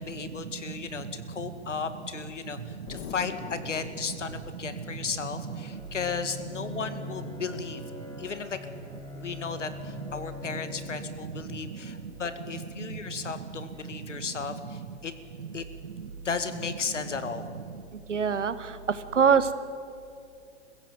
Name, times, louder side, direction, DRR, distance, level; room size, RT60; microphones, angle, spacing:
voice 1, 0.0-7.8 8.2-8.6 9.1-15.1 15.5-15.6 16.2-17.5, left 5 dB, 90° left, 10 dB, 1.9 m, -35 dB
Explosion, 2.9-5.5, left 7 dB, 55° left, 2.2 m, -43 dB
Bowed string instrument, 4.6-12.4, left 3 dB, 10° left, 4.9 m, -44 dB
voice 2, 18.1-18.5 19.1-19.5, right 7 dB, 90° right, 13 dB, 1.4 m, -23 dB
21.5 x 15.5 x 9.1 m, 2.5 s
hypercardioid pair, 115°, 35 cm